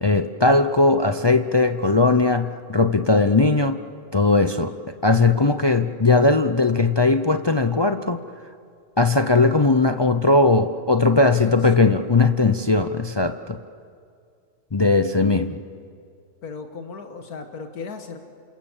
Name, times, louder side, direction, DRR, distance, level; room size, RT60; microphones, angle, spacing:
voice 1, 0.0-3.8 4.1-4.7 5.0-8.2 9.0-13.6 14.7-15.6, left 3 dB, 40° left, 9 dB, 0.3 m, -19 dB
voice 2, 11.1-12.0 16.4-18.2, left 4 dB, 90° left, 6 dB, 2.0 m, -36 dB
27.5 x 27.0 x 7.4 m, 2.3 s
omnidirectional pair, 1.5 m